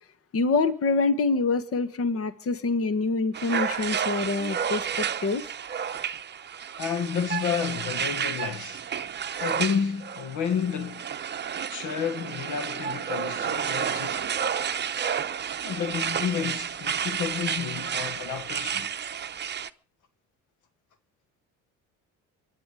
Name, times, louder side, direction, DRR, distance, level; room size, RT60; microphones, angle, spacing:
voice 1, 0.3-5.4, left 3 dB, 45° left, 1.5 m, -26 dB
sound 1, 3.3-19.7, right 8 dB, 30° right, 0.9 m, -31 dB
voice 2, 6.8-8.8 9.4-11.1 11.7-14.2 15.6-18.9, left 7 dB, 65° left, 1.6 m, -30 dB
25.0 x 10.5 x 5.0 m
supercardioid pair, 90°, 33 cm